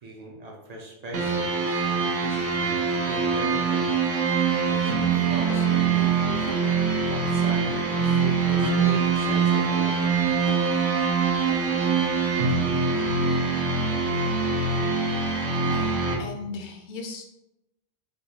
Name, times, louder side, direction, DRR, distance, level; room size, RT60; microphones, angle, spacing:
voice 1, 0.0-4.0 4.7-6.5 7.1-10.1, right 1 dB, 50° right, -1 dB, 0.5 m, -39 dB
sound 1, 1.1-16.1, right 5 dB, 85° right, 1.0 m, -24 dB
sound 2, 5.5-13.3, left 4 dB, 85° left, 1.0 m, -41 dB
voice 2, 15.6-17.3, left 3 dB, 55° left, 3 dB, 0.5 m, -37 dB
3.7 x 2.3 x 2.8 m, 0.89 s
omnidirectional pair, 1.2 m